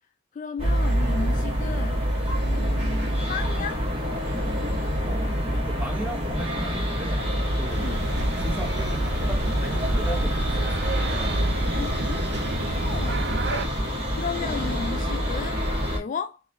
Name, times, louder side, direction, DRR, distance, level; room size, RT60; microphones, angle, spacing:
voice 1, 0.3-2.1 2.4-3.9 7.8-8.1 11.7-12.3 12.7-13.6 14.1-15.6 15.9-16.4, left 5 dB, 40° left, 0.3 m, -34 dB
sound 1, 0.6-16.0, equal, 30° right, 1.6 m, -26 dB
voice 2, 5.0-8.1 8.4-10.7, right 2 dB, 10° right, 0.9 m, -37 dB
sound 2, 7.7-13.7, right 2 dB, 55° right, 0.6 m, -29 dB
3.8 x 2.6 x 3.0 m
head